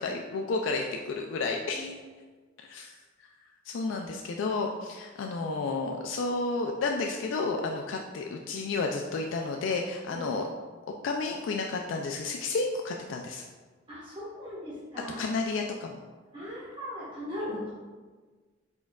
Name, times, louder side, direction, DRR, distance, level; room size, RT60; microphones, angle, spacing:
voice 1, 0.0-1.9 2.7-2.9 3.7-10.5 11.0-13.4 15.2-16.0, left 3 dB, 75° left, 2 dB, 0.3 m, -31 dB
voice 2, 13.9-15.3 16.3-17.7, left 1 dB, 25° right, -10 dB, 1.3 m, -38 dB
4.6 x 4.3 x 2.3 m, 1.4 s
head